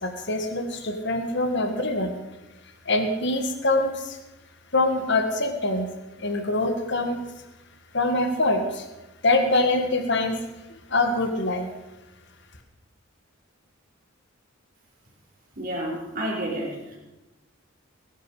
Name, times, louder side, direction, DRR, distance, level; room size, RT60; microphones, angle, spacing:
voice 1, 0.0-2.2 2.9-4.2 4.7-5.9 6.2-7.2 7.9-8.8 9.2-10.4 10.9-11.7, left 2 dB, 55° left, 5 dB, 1.7 m, -24 dB
voice 2, 15.6-17.0, right 1 dB, 45° right, -3 dB, 4.6 m, -30 dB
20.0 x 11.0 x 4.9 m, 1.0 s
head